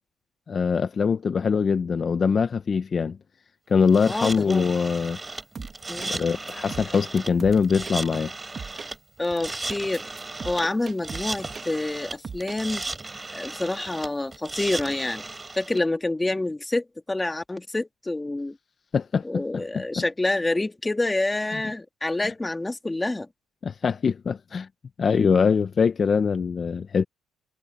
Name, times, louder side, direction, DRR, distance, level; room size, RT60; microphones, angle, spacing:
voice 1, 0.5-3.2 3.7-5.2 6.1-8.3 18.9-20.0 21.5-21.6 22.2-22.3 23.6-24.7 25.0-27.0, left 5 dB, 40° left, 0.9 m, -23 dB
sound 1, 3.9-15.8, right 3 dB, 20° right, 6.3 m, -36 dB
voice 2, 4.1-4.6 5.6-6.2 9.2-10.1 10.4-12.8 13.3-15.2 15.6-18.6 19.2-23.3, left 2 dB, 15° left, 2.1 m, -27 dB
sound 2, 5.5-6.1 6.5-8.0 8.6-8.9 9.4-11.9 12.2-12.6, right 5 dB, 35° right, 2.1 m, -39 dB
cardioid pair, 105°, 0 cm